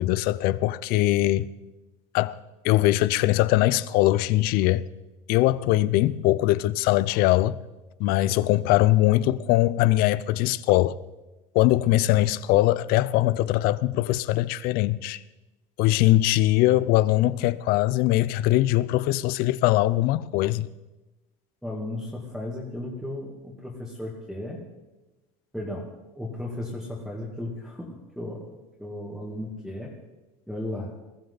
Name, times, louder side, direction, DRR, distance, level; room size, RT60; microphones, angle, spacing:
voice 1, 0.0-1.5 2.1-2.4 2.6-4.9 5.3-7.6 8.0-11.0 11.5-15.2 15.8-20.7, left 16 dB, 65° left, 0.6 m, -21 dB
voice 2, 21.6-24.6 25.5-25.9 26.2-29.9 30.5-30.9, left 1 dB, ahead, 2.4 m, -35 dB
21.0 x 14.0 x 4.1 m
cardioid pair, 125°, 17 cm